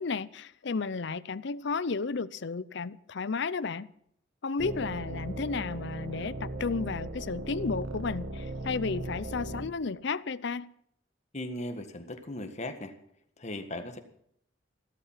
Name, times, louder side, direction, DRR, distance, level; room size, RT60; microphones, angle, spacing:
voice 1, 0.0-3.9 4.4-10.7, left 4 dB, 65° left, 0.6 m, -33 dB
sound 1, 4.6-9.7, right 2 dB, 75° right, 1.9 m, -38 dB
voice 2, 11.3-12.9 13.4-14.0, left 1 dB, 35° left, 1.6 m, -37 dB
15.0 x 13.0 x 5.7 m
head